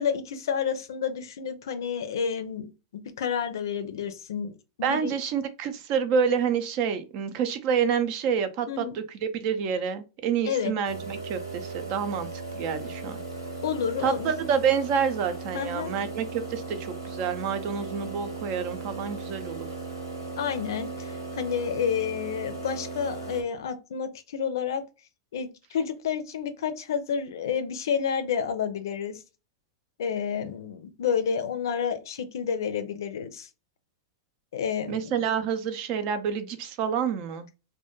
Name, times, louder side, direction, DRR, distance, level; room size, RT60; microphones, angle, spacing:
voice 1, 0.0-5.1 8.7-9.0 10.4-10.7 13.6-14.3 15.5-15.9 20.4-24.8 25.3-29.2 30.0-33.5 34.5-35.1, left 7 dB, 65° left, 0.4 m, -30 dB
voice 2, 4.8-9.0 9.3-12.3 12.5-13.2 14.0-19.7 34.9-37.5, right 7 dB, 45° right, 0.4 m, -28 dB
sound 1, 10.8-23.4, right 3 dB, 90° right, 0.9 m, -37 dB
2.2 x 2.2 x 2.9 m
figure-of-eight pair, 100°, 2 cm